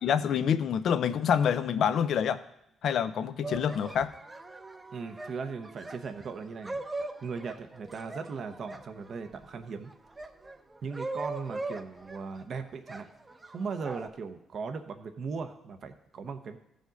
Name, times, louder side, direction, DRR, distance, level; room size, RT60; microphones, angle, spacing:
voice 1, 0.0-2.4 2.8-4.1, left 8 dB, 65° left, 12 dB, 0.5 m, -27 dB
sound 1, 3.4-9.4 9.9-12.4 12.9-14.1, right 2 dB, 20° right, 0.7 m, -40 dB
voice 2, 4.9-6.8 7.2-9.9 10.8-13.1 13.4-16.6, right 5 dB, 55° right, 7 dB, 0.8 m, -38 dB
15.0 x 5.1 x 3.9 m, 0.81 s
cardioid pair, 90°, 0 cm